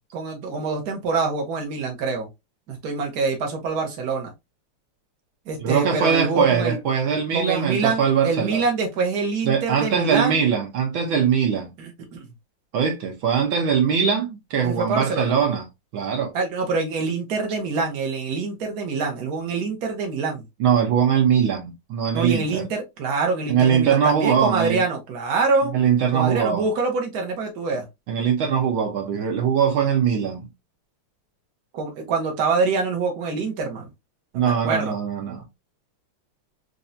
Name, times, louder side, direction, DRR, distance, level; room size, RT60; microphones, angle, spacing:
voice 1, 0.1-2.3 2.7-4.3 5.5-6.8 7.3-10.4 11.8-12.3 14.6-15.3 16.3-20.4 22.1-25.7 26.1-27.9 31.7-33.9 34.3-34.9, right 4 dB, 50° right, 1.5 m, -25 dB
voice 2, 5.6-8.6 9.4-11.7 12.7-15.6 15.9-16.3 20.6-22.6 23.5-24.8 25.7-26.7 28.1-30.5 34.3-35.4, right 7 dB, 70° right, 1.7 m, -21 dB
4.6 x 2.6 x 2.6 m
omnidirectional pair, 2.4 m